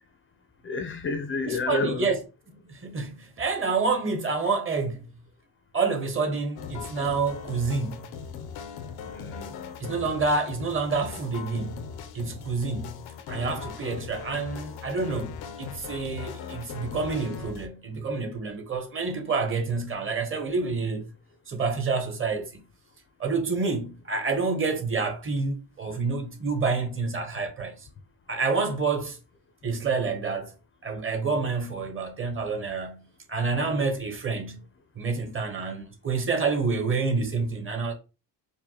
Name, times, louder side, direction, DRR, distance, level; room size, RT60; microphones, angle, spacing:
voice 1, 0.6-2.1 9.1-9.6, left 3 dB, 35° left, 0.4 m, -30 dB
voice 2, 1.4-2.2 2.7-5.1 5.7-8.1 9.8-11.9 12.1-21.0 21.5-22.6 23.2-27.9 28.3-29.2 29.6-30.5 30.8-34.6 35.0-37.9, right 4 dB, 35° right, 0.9 m, -28 dB
sound 1, 6.6-17.7, left 7 dB, 85° left, 0.6 m, -39 dB
5.0 x 2.1 x 2.8 m
cardioid pair, 135°, 37 cm